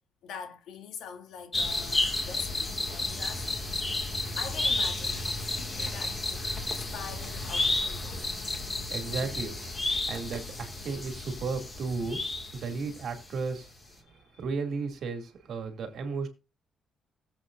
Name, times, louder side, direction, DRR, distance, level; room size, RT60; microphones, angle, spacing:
voice 1, 0.2-3.6 4.0-8.4 14.0-14.2, left 7 dB, 90° left, 2.8 m, -44 dB
sound 1, 1.5-13.2 13.5-13.6, left 2 dB, 20° left, 2.1 m, -32 dB
voice 2, 8.6-12.2 12.5-13.7 14.4-16.3, right 4 dB, 50° right, 2.6 m, -34 dB
19.5 x 7.9 x 2.6 m
cardioid pair, 175°, 0 cm